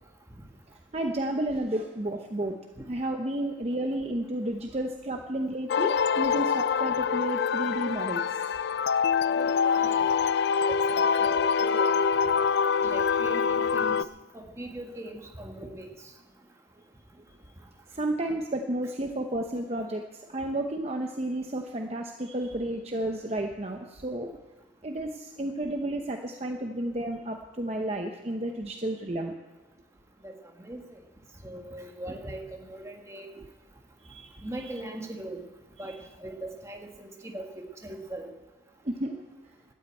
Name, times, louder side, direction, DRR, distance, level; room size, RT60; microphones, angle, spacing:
voice 1, 0.9-2.6 2.9-8.4 17.9-24.4 24.8-29.3 34.0-34.7 38.8-39.2, right 1 dB, 35° right, 3 dB, 0.8 m, -32 dB
sound 1, 5.7-14.0, left 6 dB, 60° left, 0.4 m, -25 dB
voice 2, 9.3-10.0 10.7-12.0 12.8-14.0 14.3-15.9 30.2-31.0 31.4-33.3 34.4-35.4 35.8-37.4 37.8-38.3, right 1 dB, 15° right, 2 dB, 1.6 m, -40 dB
12.5 x 8.6 x 8.9 m, 1.2 s
head